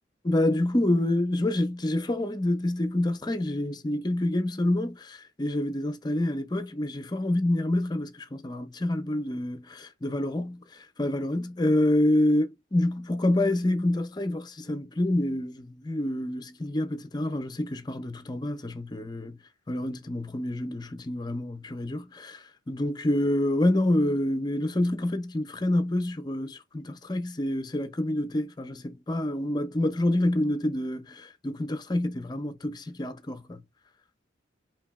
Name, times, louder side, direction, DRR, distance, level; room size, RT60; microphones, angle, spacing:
voice 1, 0.2-19.4 19.7-33.6, left 1 dB, 20° left, 0.5 m, -27 dB
4.9 x 2.8 x 2.3 m
head